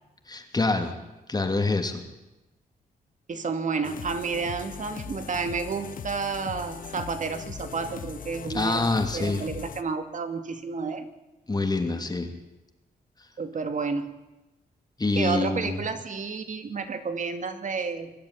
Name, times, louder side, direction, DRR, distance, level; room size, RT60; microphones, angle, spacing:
voice 1, 0.3-0.9 1.3-2.0 8.5-9.4 11.5-12.3 15.0-15.8, left 3 dB, 25° left, 5 dB, 2.8 m, -26 dB
voice 2, 3.3-8.8 9.1-11.1 13.4-14.2 15.1-18.1, right 5 dB, 50° right, 8 dB, 2.4 m, -31 dB
sound 1, 3.8-9.8, left 7 dB, 60° left, 1.3 m, -39 dB
23.5 x 12.5 x 9.8 m, 1.0 s
cardioid pair, 95°, 16 cm